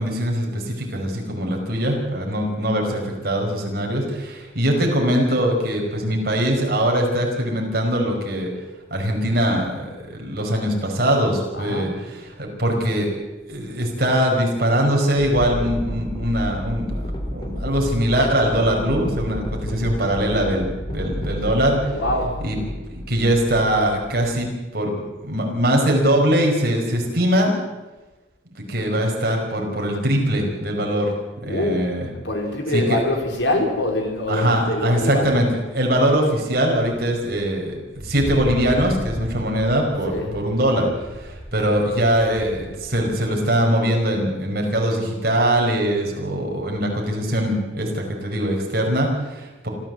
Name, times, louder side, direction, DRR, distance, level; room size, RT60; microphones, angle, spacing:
voice 1, 0.0-8.5 8.9-13.1 13.5-17.0 17.3-21.9 22.4-22.6 22.9-24.5 24.7-24.9 25.2-27.5 28.5-31.1 31.4-32.0 32.7-33.0 34.3-35.5 35.7-37.8 38.0-40.9 41.1-49.7, equal, 50° right, 1 dB, 5.2 m, -22 dB
voice 2, 11.5-12.0 21.9-22.4 31.4-31.9 32.2-35.4 40.1-40.4, left 1 dB, 75° left, 2 dB, 4.4 m, -24 dB
sound 1, 15.2-24.5, equal, 25° left, 2.0 m, -31 dB
Wind, 37.9-43.4, equal, 30° right, 7.0 m, -35 dB
26.5 x 14.0 x 7.9 m, 1.2 s
head